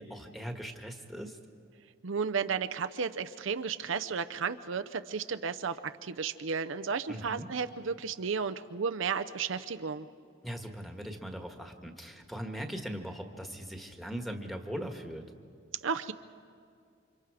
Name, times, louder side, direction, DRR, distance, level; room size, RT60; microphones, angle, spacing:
voice 1, 0.0-1.4 7.1-7.5 10.4-15.2, equal, ahead, 3 dB, 1.5 m, -40 dB
voice 2, 2.0-10.1 15.8-16.1, right 5 dB, 70° right, 8 dB, 0.6 m, -33 dB
29.0 x 25.5 x 4.9 m, 2.4 s
head